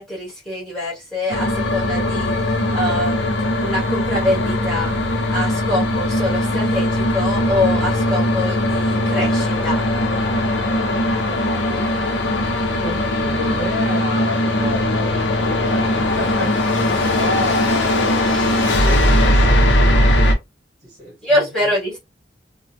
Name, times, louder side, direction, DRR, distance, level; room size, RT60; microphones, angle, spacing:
voice 1, 0.0-3.2 3.6-4.9 5.3-9.8 21.2-22.0, left 1 dB, 5° left, 1.6 m, -24 dB
sound 1, 1.3-20.3, left 1 dB, 75° left, 0.6 m, -19 dB
voice 2, 10.9-11.9 12.8-20.3 20.8-21.7, left 1 dB, 40° right, 1.4 m, -31 dB
3.1 x 2.1 x 2.6 m
head